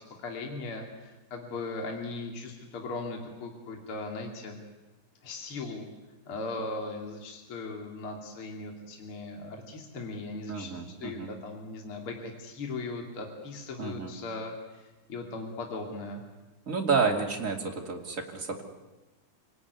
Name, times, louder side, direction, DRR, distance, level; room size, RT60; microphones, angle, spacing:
voice 1, 0.2-4.6 5.2-5.9 6.3-10.7 11.0-16.2, left 3 dB, 45° left, 2 dB, 3.6 m, -38 dB
voice 2, 10.5-11.3 13.8-14.1 16.7-18.6, right 4 dB, 25° right, 2 dB, 2.9 m, -30 dB
27.5 x 18.0 x 9.7 m, 1.1 s
omnidirectional pair, 3.4 m